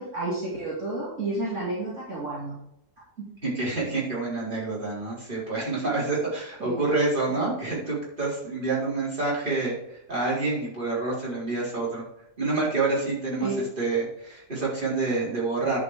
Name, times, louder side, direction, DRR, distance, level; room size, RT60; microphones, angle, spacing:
voice 1, 0.0-2.6 3.2-3.3 6.6-6.8 13.4-13.6, right 2 dB, 55° right, -7 dB, 3.3 m, -31 dB
voice 2, 3.4-9.8 10.1-12.0 12.4-13.5 13.8-15.8, right 3 dB, 35° right, -6 dB, 4.3 m, -27 dB
10.5 x 5.4 x 4.9 m, 0.81 s
omnidirectional pair, 1.5 m